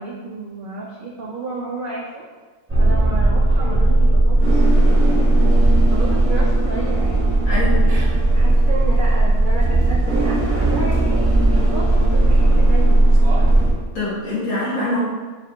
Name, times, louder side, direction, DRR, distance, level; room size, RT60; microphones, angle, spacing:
voice 1, 0.0-2.3 2.8-5.4 5.9-7.2 7.8-7.9 8.3-13.2, right 3 dB, 75° right, -4 dB, 0.4 m, -32 dB
sound 1, 2.7-13.7, right 2 dB, 15° right, 0.4 m, -16 dB
voice 2, 7.5-7.9 13.9-15.0, left 2 dB, 75° left, -9 dB, 2.0 m, -24 dB
sound 2, 7.9-13.7, right 1 dB, 55° right, 0.9 m, -35 dB
5.9 x 2.4 x 2.8 m, 1.3 s
omnidirectional pair, 1.5 m